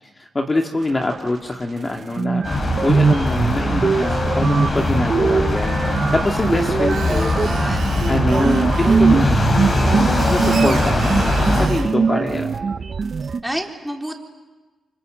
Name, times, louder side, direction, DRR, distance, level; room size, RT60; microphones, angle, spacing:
voice 1, 0.2-7.3 8.1-12.6, left 2 dB, 30° left, 2 dB, 2.1 m, -24 dB
sound 1, 1.8-1.9 2.2-13.4, right 5 dB, 50° right, 1.1 m, -21 dB
sound 2, 2.4-11.7, left 2 dB, 45° left, 8.0 m, -21 dB
Screech, 6.5-9.0 9.9-11.9, right 7 dB, 75° right, 3.6 m, -33 dB
voice 2, 7.0-7.9 13.4-14.2, right 1 dB, 5° right, 1 dB, 4.1 m, -30 dB
29.0 x 26.0 x 7.8 m, 1.2 s
cardioid pair, 75°, 0 cm